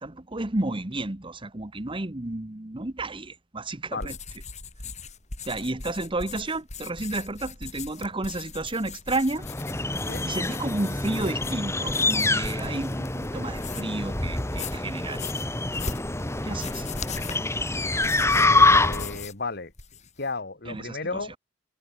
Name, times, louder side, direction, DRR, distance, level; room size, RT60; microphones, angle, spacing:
voice 1, 0.0-4.2 5.4-9.5 10.2-15.2 16.4-16.9 20.7-21.0 21.3-21.4, right 2 dB, 25° right, 1.2 m, -31 dB
sound 1, 3.9-14.0 14.4-19.4 19.7-20.2, left 5 dB, 35° left, 4.4 m, -40 dB
sound 2, 9.4-19.2, left 2 dB, 15° left, 1.5 m, -26 dB
voice 2, 18.3-19.7 20.2-21.3, left 3 dB, 55° left, 2.3 m, -33 dB
head